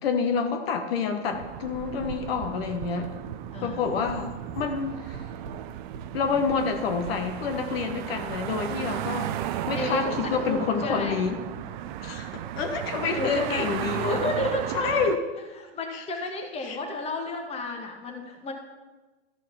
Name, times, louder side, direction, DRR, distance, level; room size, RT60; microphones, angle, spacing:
voice 1, 0.0-3.1 3.6-5.2 6.1-11.4 12.0-14.2 14.7-15.2 15.9-16.0 16.6-16.8, left 5 dB, 60° left, 6 dB, 1.3 m, -28 dB
sound 1, 1.3-15.2, right 12 dB, 45° right, 0.5 m, -35 dB
sound 2, 3.0-3.2 4.1-4.2 5.1-5.6 5.9-6.1 6.5-6.6 7.0-7.2, right 3 dB, 75° right, 1.5 m, -42 dB
voice 2, 3.5-3.9 9.6-11.2 13.0-15.0 15.6-18.5, left 2 dB, 20° left, 3 dB, 1.3 m, -32 dB
13.0 x 4.6 x 5.7 m, 1.2 s
hypercardioid pair, 125°, 34 cm